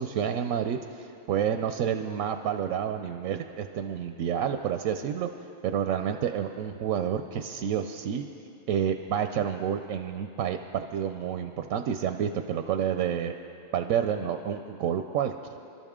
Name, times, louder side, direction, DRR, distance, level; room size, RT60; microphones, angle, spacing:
voice 1, 0.0-5.3 5.6-8.2 8.7-13.3 13.7-15.6, right 8 dB, 90° right, 7 dB, 1.0 m, -29 dB
26.0 x 13.0 x 3.6 m, 2.8 s
omnidirectional pair, 1.4 m